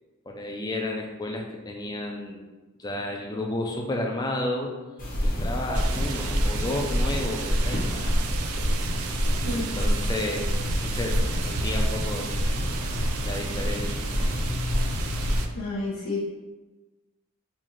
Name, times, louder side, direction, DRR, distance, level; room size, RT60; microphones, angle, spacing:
voice 1, 0.3-2.4 2.8-4.8 5.2-8.1 9.5-12.3 13.2-14.1, left 1 dB, 20° left, 1 dB, 0.3 m, -32 dB
sound 1, 5.0-15.4, equal, 35° left, 0.9 m, -27 dB
sound 2, 5.7-15.5, right 6 dB, 80° right, 0.3 m, -35 dB
voice 2, 15.5-16.3, left 2 dB, 90° left, -6 dB, 0.7 m, -30 dB
4.2 x 2.4 x 3.1 m, 1.2 s
head